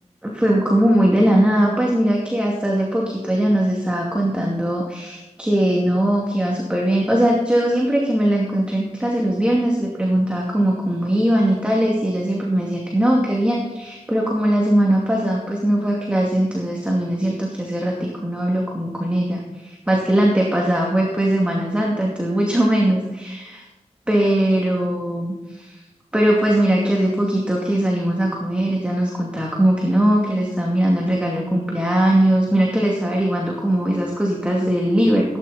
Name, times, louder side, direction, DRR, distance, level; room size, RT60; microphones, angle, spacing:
voice 1, 0.2-23.6 24.1-25.8 26.1-35.4, right 1 dB, 10° right, -2 dB, 2.4 m, -20 dB
16.5 x 11.0 x 4.2 m, 1.1 s
wide cardioid pair, 75°, 12 cm